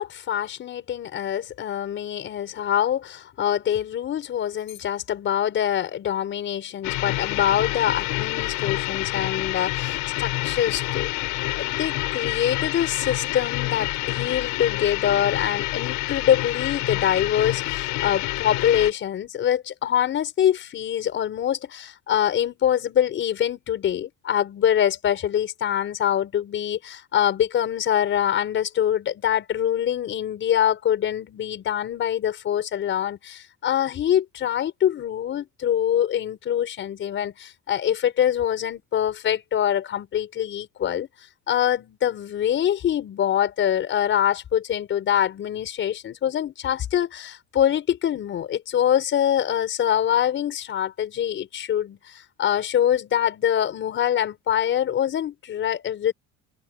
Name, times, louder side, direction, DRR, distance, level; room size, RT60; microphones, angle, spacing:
voice 1, 0.0-11.1 11.6-41.1 41.5-52.0 52.4-56.1, left 10 dB, 35° left, 5.7 m, -24 dB
sound 1, 6.8-18.9, left 19 dB, 60° left, 7.8 m, -28 dB
cardioid pair, 175°, 34 cm